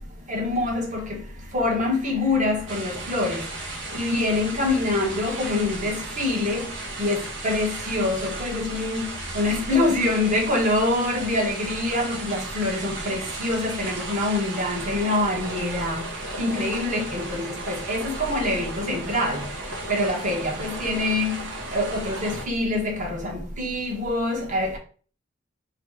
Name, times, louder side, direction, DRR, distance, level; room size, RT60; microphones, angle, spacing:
voice 1, 0.3-1.2 1.5-3.5 3.9-6.6 7.0-16.0 16.4-19.4 19.9-24.8, left 2 dB, 40° right, 1.4 m, -25 dB
sound 1, 2.7-22.5, right 2 dB, 70° right, 1.4 m, -35 dB
3.2 x 3.2 x 4.7 m
head